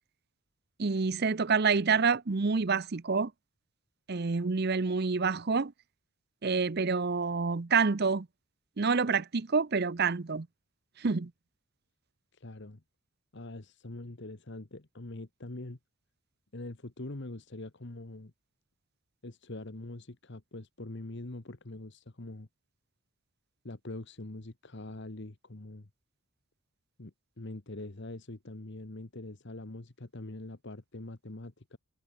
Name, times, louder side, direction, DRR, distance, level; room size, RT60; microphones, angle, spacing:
voice 1, 0.8-3.3 4.1-5.7 6.4-8.3 8.8-10.5 11.0-11.3, right 5 dB, 45° right, 0.6 m, -27 dB
voice 2, 12.3-12.8 13.3-15.8 16.5-18.3 19.2-22.5 23.6-25.9 27.0-31.8, left 2 dB, 55° left, 1.3 m, -43 dB
head